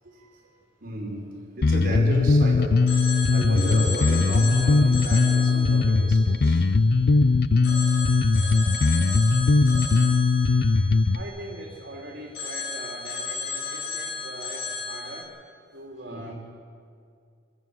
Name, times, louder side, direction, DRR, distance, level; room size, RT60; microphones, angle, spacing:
voice 1, 0.8-6.7 8.4-8.5 9.9-10.1 16.1-16.3, right 1 dB, 55° right, 0 dB, 5.2 m, -34 dB
Bass guitar, 1.6-11.2, left 3 dB, 60° left, 0.5 m, -20 dB
Telephone, 2.9-7.1 7.6-11.9 12.3-15.2, left 4 dB, 85° left, 5.9 m, -34 dB
voice 2, 11.1-15.4 15.7-16.3, right 1 dB, 75° right, -2 dB, 3.0 m, -41 dB
27.0 x 14.5 x 7.9 m, 2.3 s
head